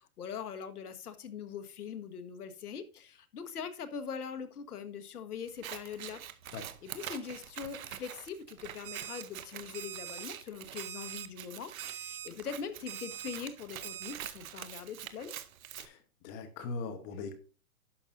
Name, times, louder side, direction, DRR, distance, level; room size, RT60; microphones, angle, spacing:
voice 1, 0.0-6.2 6.5-15.3, left 7 dB, 85° left, 10 dB, 1.5 m, -42 dB
Scissors, 5.5-15.9, right 11 dB, 65° right, 1.1 m, -46 dB
Alarm, 8.8-9.2 9.7-10.3 10.8-11.3 11.8-12.3 12.9-13.4 13.8-14.1, right 12 dB, 40° right, 0.6 m, -42 dB
voice 2, 16.2-17.4, left 4 dB, 20° left, 9 dB, 1.1 m, -40 dB
11.5 x 6.4 x 2.6 m, 0.36 s
hypercardioid pair, 160°, 44 cm